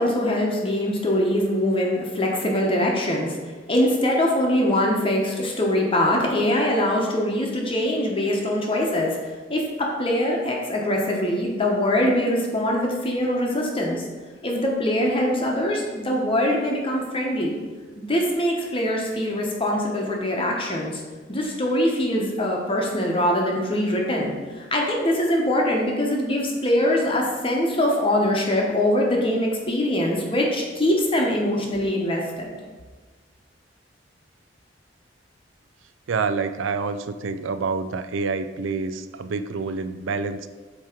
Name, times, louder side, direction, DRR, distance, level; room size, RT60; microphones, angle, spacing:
voice 1, 0.0-14.0 14.4-17.6 18.0-21.0 21.3-32.5, left 1 dB, 30° left, -1 dB, 0.9 m, -23 dB
voice 2, 36.1-40.5, right 4 dB, 85° right, 11 dB, 0.4 m, -27 dB
8.3 x 3.0 x 4.4 m, 1.4 s
head